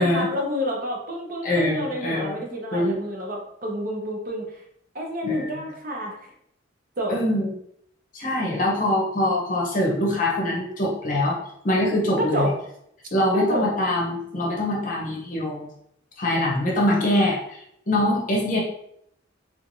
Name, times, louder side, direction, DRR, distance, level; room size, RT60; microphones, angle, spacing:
voice 1, 0.0-4.6 4.9-6.3 7.0-7.2 12.3-12.5 13.3-13.7, equal, 45° right, 1 dB, 0.7 m, -29 dB
voice 2, 1.4-2.4 2.7-3.0 5.2-5.6 7.1-7.5 8.1-11.4 11.6-12.5 13.1-15.7 16.2-18.6, left 1 dB, 45° left, -3 dB, 0.7 m, -23 dB
3.6 x 3.1 x 2.6 m, 0.74 s
head